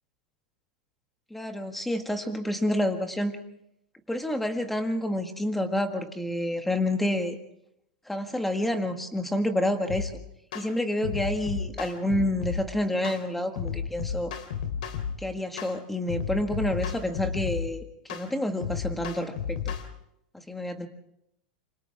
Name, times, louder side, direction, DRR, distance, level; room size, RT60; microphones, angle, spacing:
voice 1, 1.3-3.4 4.1-7.4 8.1-10.1 10.5-14.3 15.2-17.8 18.1-19.7 20.3-20.9, left 1 dB, 5° left, 6 dB, 1.8 m, -28 dB
sound 1, 9.9-10.1 10.5-10.7 11.0-12.6 13.0-13.2 13.6-15.2 15.6-15.8 16.1-17.7 18.1-18.3 18.6-19.9, left 7 dB, 75° left, 3.1 m, -32 dB
28.0 x 25.5 x 3.6 m, 0.80 s
supercardioid pair, 160°, 4 cm